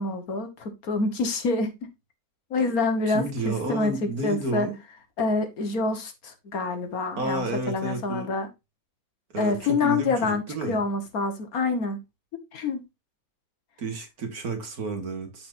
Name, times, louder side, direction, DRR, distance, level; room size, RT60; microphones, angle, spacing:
voice 1, 0.0-1.7 2.5-4.7 5.2-8.5 9.4-12.0 12.5-12.8, left 3 dB, 75° left, 1.7 m, -27 dB
voice 2, 3.1-4.8 7.2-8.3 9.3-10.8 13.8-15.5, right 2 dB, 80° right, 2.1 m, -31 dB
13.0 x 4.4 x 2.5 m
omnidirectional pair, 1.6 m